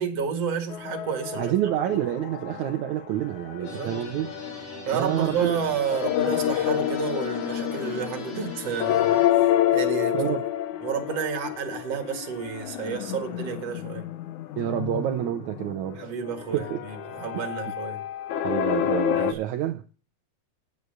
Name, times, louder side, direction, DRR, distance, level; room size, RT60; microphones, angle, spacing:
voice 1, 0.0-1.5 1.9-2.0 3.6-4.0 4.9-10.3 10.8-14.1 16.0-18.0 19.1-19.4, right 7 dB, 50° right, 2.7 m, -31 dB
sound 1, 0.7-2.9 3.2-19.3, left 12 dB, 70° left, 2.1 m, -29 dB
voice 2, 1.4-4.3 4.9-5.6 10.1-10.5 14.6-16.1 16.5-16.8 17.3-17.4 18.4-19.8, right 12 dB, 70° right, 2.0 m, -28 dB
sound 2, 3.6-9.3, left 4 dB, 90° left, 4.9 m, -41 dB
9.8 x 8.3 x 6.7 m
omnidirectional pair, 3.9 m